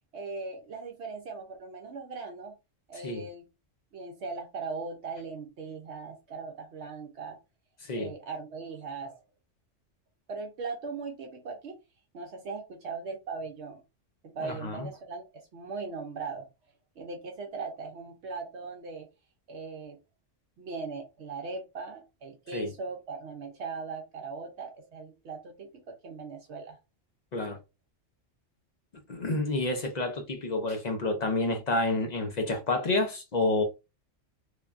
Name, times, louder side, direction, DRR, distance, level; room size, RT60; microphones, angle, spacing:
voice 1, 0.1-2.5 2.9-3.4 3.9-7.4 7.9-9.2 10.3-11.8 12.1-13.8 14.2-15.3 15.5-16.5 17.0-19.1 19.5-20.0 20.6-26.8, right 4 dB, 65° right, 0.9 m, -39 dB
voice 2, 14.4-14.9 22.5-22.7 27.3-27.6 29.1-33.6, left 2 dB, 55° left, 0.5 m, -29 dB
3.2 x 2.2 x 2.4 m
omnidirectional pair, 1.3 m